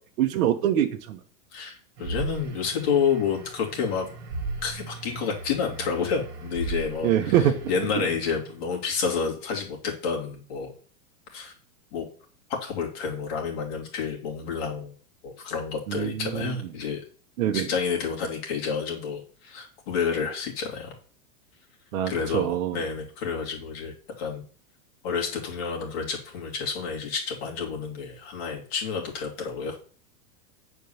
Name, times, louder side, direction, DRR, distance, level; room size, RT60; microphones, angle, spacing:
voice 1, 0.2-1.2 7.0-7.6 15.9-16.4 17.4-17.7 21.9-22.8, right 11 dB, 65° right, 3 dB, 1.1 m, -24 dB
voice 2, 1.5-4.1 4.6-10.7 11.3-11.5 11.9-12.0 12.6-14.9 15.2-17.0 17.5-21.0 22.0-24.4 25.0-29.8, left 6 dB, 45° left, 0 dB, 2.6 m, -29 dB
sound 1, 2.0-8.7, right 3 dB, 50° right, 2.3 m, -37 dB
9.3 x 4.6 x 7.0 m, 0.43 s
supercardioid pair, 180°, 44 cm